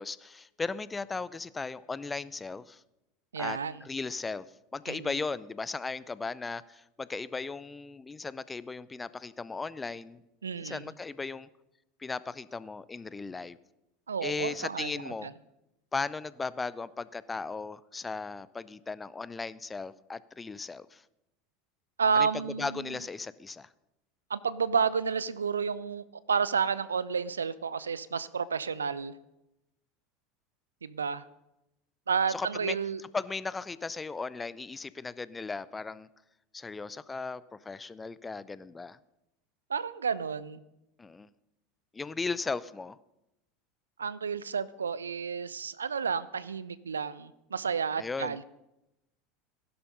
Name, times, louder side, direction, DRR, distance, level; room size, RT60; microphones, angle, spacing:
voice 1, 0.0-2.8 3.4-4.5 4.7-10.2 10.5-11.5 12.0-13.6 14.2-15.3 15.9-21.0 22.1-22.3 22.6-23.7 32.3-32.8 33.1-36.1 36.5-39.0 41.0-41.3 41.9-43.0 48.0-48.4, left 4 dB, 15° left, 18 dB, 0.6 m, -37 dB
voice 2, 3.3-3.8 4.9-5.1 10.4-10.8 14.1-15.3 22.0-23.0 24.3-29.2 30.8-31.2 32.1-33.0 39.7-40.6 44.0-48.4, right 6 dB, 75° right, 18 dB, 0.5 m, -31 dB
16.0 x 11.5 x 5.4 m, 0.91 s
figure-of-eight pair, 75°, 0 cm